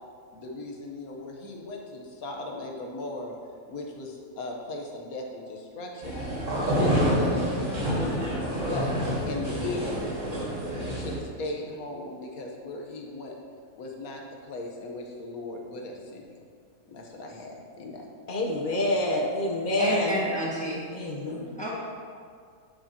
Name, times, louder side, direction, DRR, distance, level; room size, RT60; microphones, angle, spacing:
voice 1, 0.3-3.4 3.7-6.2 6.6-8.1 8.5-8.9 9.3-10.0 10.7-13.3 13.8-16.4 16.8-18.1, left 2 dB, 80° left, 1 dB, 1.4 m, -37 dB
sound 1, 6.0-11.2, equal, 55° right, 2.2 m, -28 dB
voice 2, 18.3-20.2 20.9-21.6, left 1 dB, 45° left, 0 dB, 0.8 m, -27 dB
voice 3, 19.8-20.8 21.6-21.7, equal, 5° left, -7 dB, 1.5 m, -29 dB
10.5 x 5.0 x 2.8 m, 2.1 s
omnidirectional pair, 1.5 m